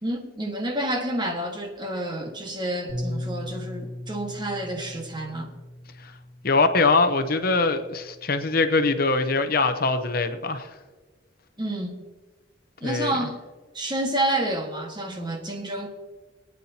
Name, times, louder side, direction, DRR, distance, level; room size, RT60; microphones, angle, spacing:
voice 1, 0.0-5.5 11.6-12.0 12.8-13.4 13.7-15.9, right 1 dB, 25° right, 1.5 m, -29 dB
Bass guitar, 2.9-9.1, left 1 dB, 80° left, 1.8 m, -38 dB
voice 2, 6.4-10.8 12.8-13.2, left 3 dB, 50° left, 0.8 m, -23 dB
23.0 x 9.4 x 2.8 m
head